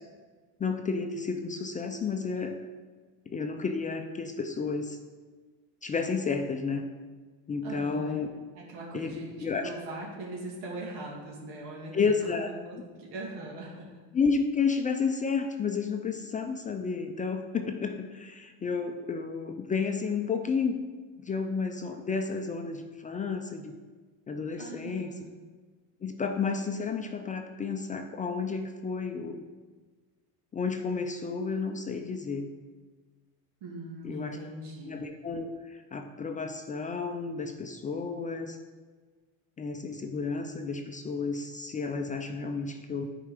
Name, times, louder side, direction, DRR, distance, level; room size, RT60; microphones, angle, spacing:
voice 1, 0.6-2.6 3.3-5.0 5.8-6.8 7.5-8.3 8.9-9.7 11.9-12.5 14.1-20.9 21.2-23.7 24.3-25.1 26.0-29.5 30.5-32.5 34.0-34.4 34.9-38.6 39.6-43.1, left 5 dB, 20° left, 5 dB, 0.4 m, -31 dB
voice 2, 7.6-8.2 8.5-11.9 12.3-13.9 24.6-25.3 33.6-35.0, right 2 dB, 85° right, -3 dB, 2.7 m, -41 dB
10.0 x 4.6 x 5.0 m, 1.4 s
cardioid pair, 135°, 41 cm